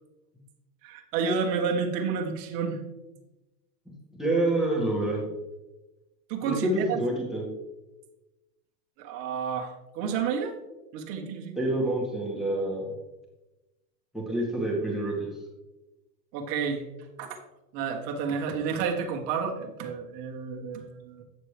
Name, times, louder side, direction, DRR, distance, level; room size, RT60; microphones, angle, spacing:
voice 1, 0.8-2.8 6.3-7.0 9.0-10.5 10.9-11.6 16.3-16.8 17.2-17.4 17.7-21.2, right 6 dB, 45° right, 2 dB, 1.4 m, -30 dB
voice 2, 4.2-5.2 6.4-7.4 11.5-12.9 14.1-15.3, right 1 dB, ahead, -3 dB, 1.6 m, -27 dB
9.2 x 6.7 x 3.3 m, 1.0 s
hypercardioid pair, 130°, 49 cm